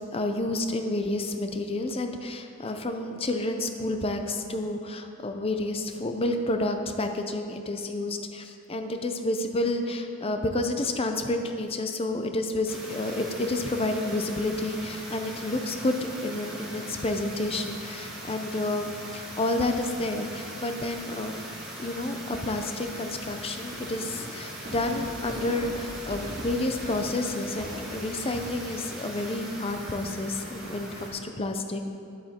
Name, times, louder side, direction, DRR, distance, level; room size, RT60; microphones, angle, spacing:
voice 1, 0.1-21.3 21.8-31.9, left 2 dB, 25° left, 6 dB, 0.6 m, -30 dB
sound 1, 12.7-31.1, right 1 dB, ahead, 1.7 m, -40 dB
sound 2, 22.8-30.7, equal, 40° right, 2.6 m, -42 dB
11.0 x 7.4 x 4.3 m, 2.4 s
head